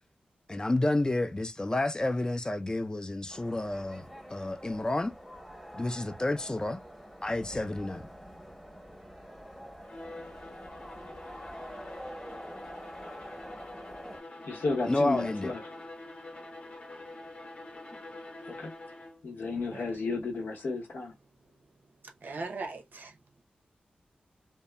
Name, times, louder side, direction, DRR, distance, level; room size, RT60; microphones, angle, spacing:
voice 1, 0.5-4.0 4.3-5.1 5.7-6.8 7.2-8.0 14.9-15.5, left 2 dB, 25° left, 0.4 m, -30 dB
sound 1, 3.3-14.2, equal, 5° left, 0.9 m, -46 dB
Bowed string instrument, 9.8-19.3, left 2 dB, 40° left, 0.8 m, -46 dB
voice 2, 14.4-15.6 18.5-18.7 19.2-21.1, left 3 dB, 75° left, 0.8 m, -32 dB
voice 3, 22.2-23.2, right 3 dB, 70° right, 0.6 m, -39 dB
2.6 x 2.2 x 2.2 m
cardioid pair, 40°, 3 cm